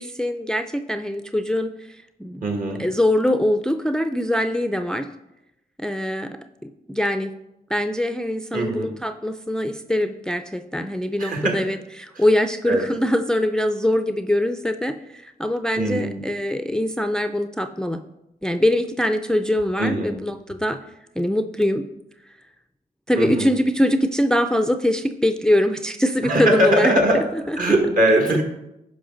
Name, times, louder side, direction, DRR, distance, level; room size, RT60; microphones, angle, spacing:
voice 1, 0.0-2.4 2.8-5.1 5.8-6.4 6.9-7.3 7.7-18.0 18.4-20.8 21.2-21.8 23.1-27.0 27.3-27.6, left 1 dB, 5° left, 8 dB, 0.4 m, -23 dB
voice 2, 2.4-2.9 8.5-8.9 11.2-11.6 12.7-12.8 15.8-16.2 19.8-20.2 23.2-23.5 26.2-27.2 27.6-28.4, right 1 dB, 60° right, 2 dB, 1.9 m, -21 dB
10.0 x 5.4 x 3.9 m, 0.88 s
cardioid pair, 90°, 16 cm